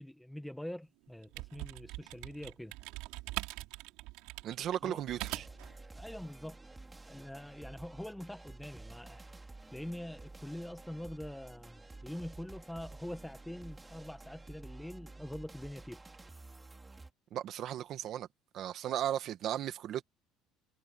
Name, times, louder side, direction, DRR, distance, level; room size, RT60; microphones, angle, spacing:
voice 1, 0.0-2.7 4.8-5.0 5.9-6.6 7.1-9.3 9.7-16.0, left 1 dB, 5° left, 1.6 m, -44 dB
sound 1, 1.1-5.7, right 21 dB, 80° right, 3.6 m, -43 dB
voice 2, 4.4-5.5 17.3-18.3 18.5-20.0, right 11 dB, 55° right, 1.9 m, -36 dB
sound 2, 5.1-17.1, right 2 dB, 15° right, 2.9 m, -51 dB
cardioid pair, 115°, 0 cm